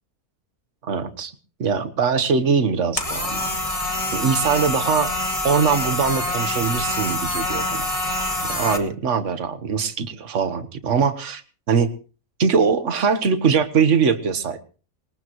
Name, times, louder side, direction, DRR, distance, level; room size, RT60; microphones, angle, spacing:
voice 1, 0.8-1.3 1.6-3.5 4.1-5.1 5.4-7.9 8.5-11.4 11.7-11.9 12.4-14.6, right 6 dB, 60° right, 10 dB, 1.6 m, -22 dB
sound 1, 3.0-8.8, left 1 dB, 25° left, 2.2 m, -25 dB
21.5 x 19.5 x 3.1 m, 0.39 s
omnidirectional pair, 1.5 m